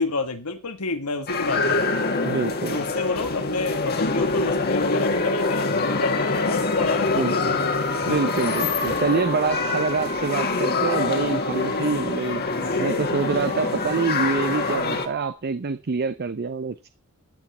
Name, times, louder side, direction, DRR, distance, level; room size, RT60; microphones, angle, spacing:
voice 1, 0.0-1.9 2.7-7.6 9.6-9.8, left 3 dB, 90° left, 1.6 m, -29 dB
sound 1, 1.3-15.1, left 3 dB, 45° left, 1.7 m, -25 dB
voice 2, 2.2-2.8 7.2-7.6 8.1-12.4 12.8-16.9, right 4 dB, 45° right, 0.6 m, -26 dB
sound 2, 7.9-15.3, right 6 dB, 65° right, 2.1 m, -39 dB
13.5 x 8.2 x 4.3 m
head